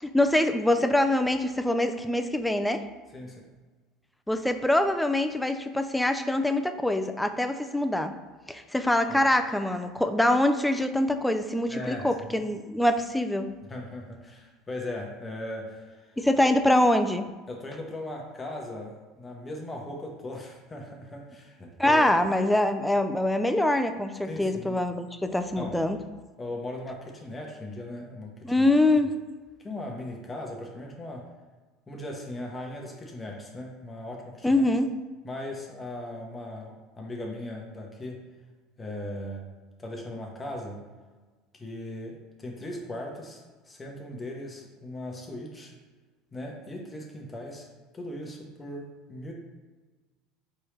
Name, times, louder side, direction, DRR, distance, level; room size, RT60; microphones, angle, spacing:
voice 1, 0.0-2.8 4.3-8.1 8.5-13.5 16.2-17.2 21.8-26.0 28.4-29.1 34.4-34.9, left 1 dB, 5° left, 7 dB, 0.3 m, -24 dB
voice 2, 3.1-3.4 11.7-12.1 13.7-16.2 17.5-22.0 24.3-24.8 25.6-25.8 26.4-28.7 29.6-31.3 31.9-34.6 35.2-38.2 38.8-39.4 39.8-40.8 41.5-45.7 46.3-47.7 47.9-49.3, left 1 dB, 20° left, 0 dB, 0.9 m, -38 dB
4.5 x 3.1 x 3.1 m, 1.3 s
supercardioid pair, 100°, 0 cm